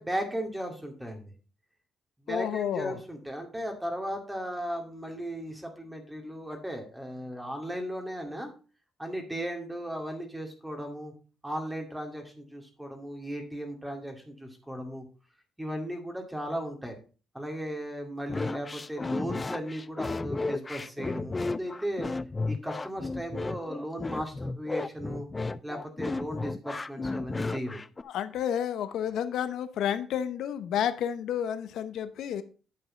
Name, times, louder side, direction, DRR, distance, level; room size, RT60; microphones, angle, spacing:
voice 1, 0.0-1.3 2.3-8.5 9.0-11.1 11.4-15.0 15.6-17.0 17.3-22.1 22.5-25.3 25.6-27.8, equal, 10° right, 3 dB, 2.2 m, -36 dB
voice 2, 2.3-3.0 28.0-32.4, left 9 dB, 80° left, 11 dB, 0.8 m, -30 dB
sound 1, 18.3-28.0, left 3 dB, 25° left, 0.5 m, -33 dB
9.4 x 5.5 x 5.1 m, 0.36 s
cardioid pair, 90°, 0 cm